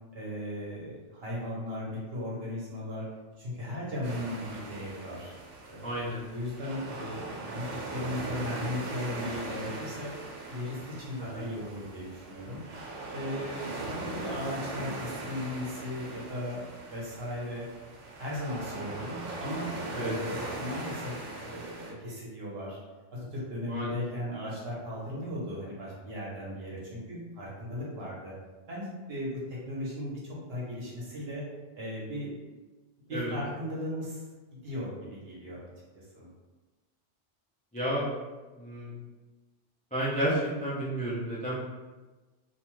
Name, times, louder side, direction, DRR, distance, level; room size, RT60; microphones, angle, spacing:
voice 1, 0.1-3.0 3.4-5.3 5.7-5.9 6.3-10.1 10.5-12.6 13.1-17.6 18.2-21.2 21.4-22.8 23.1-28.3 28.7-31.4 31.8-32.3 33.1-34.2 34.5-35.6 35.9-36.3, left 1 dB, 60° right, -6 dB, 1.1 m, -37 dB
sound 1, 4.0-21.9, right 2 dB, 90° right, 1.0 m, -40 dB
voice 2, 5.8-6.2 11.2-11.5 19.9-20.1 23.7-23.9 33.1-33.4 37.7-38.1 38.6-38.9 39.9-41.5, right 1 dB, 10° left, -8 dB, 0.4 m, -31 dB
2.5 x 2.3 x 3.0 m, 1.2 s
omnidirectional pair, 1.2 m